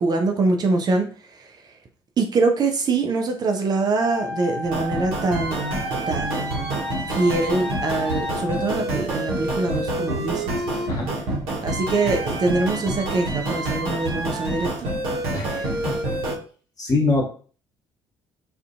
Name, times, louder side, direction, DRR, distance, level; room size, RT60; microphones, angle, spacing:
voice 1, 0.0-1.5 2.2-6.8 7.1-10.5 11.6-14.9, right 3 dB, 35° right, 4 dB, 0.5 m, -24 dB
Wind instrument woodwind instrument, 3.9-8.7, left 1 dB, 90° right, 0.5 m, -33 dB
sound 1, 4.6-16.4, right 1 dB, 65° right, 0.8 m, -27 dB
voice 2, 15.3-16.0 16.8-17.2, left 3 dB, 35° left, -1 dB, 1.0 m, -23 dB
2.4 x 2.1 x 2.5 m, 0.41 s
figure-of-eight pair, 50°, 11 cm